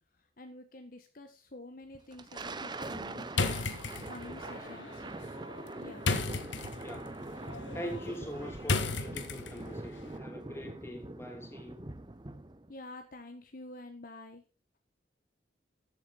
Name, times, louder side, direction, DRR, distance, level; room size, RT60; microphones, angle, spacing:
voice 1, 0.4-5.0 5.8-6.1 12.7-14.4, left 2 dB, 50° left, 1.3 m, -48 dB
Thunder, 1.9-12.7, right 2 dB, 25° right, 0.8 m, -43 dB
sound 1, 3.3-9.8, left 3 dB, 80° left, 1.5 m, -35 dB
voice 2, 6.8-7.2 7.7-11.8, equal, 15° left, 2.8 m, -43 dB
14.0 x 8.4 x 4.1 m
head